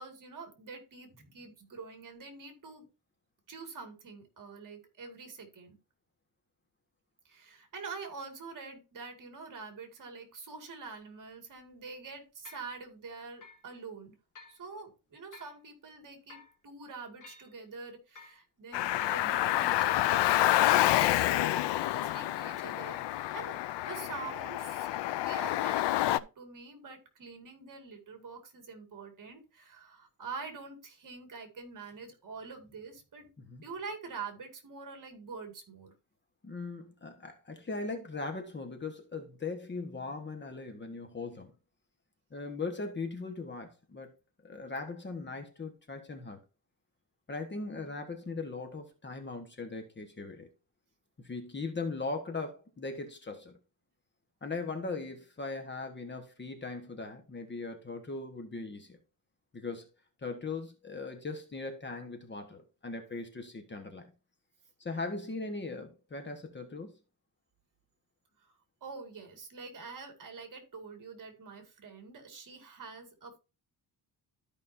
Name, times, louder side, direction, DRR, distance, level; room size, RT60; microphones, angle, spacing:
voice 1, 0.0-2.9 3.5-5.8 7.2-14.1 14.5-33.3 33.6-35.9 68.4-68.5 68.8-73.4, right 4 dB, 50° right, 2.4 m, -46 dB
sound 1, 10.8-10.9 11.5-11.6 12.4-12.7 13.4-13.6 14.3-14.6 15.3-15.6 16.3-16.6 17.2-17.5 18.1-18.4 19.0-19.3, left 4 dB, 45° left, 2.0 m, -52 dB
Car, 18.7-26.2, left 14 dB, 85° left, 0.6 m, -28 dB
voice 2, 36.4-41.5 42.3-44.1 44.4-46.4 47.3-50.5 51.2-53.6 54.4-59.0 59.5-59.9 60.2-64.1 64.8-67.0, left 3 dB, 25° left, 1.4 m, -39 dB
13.5 x 5.3 x 2.7 m
cardioid pair, 130°, 41 cm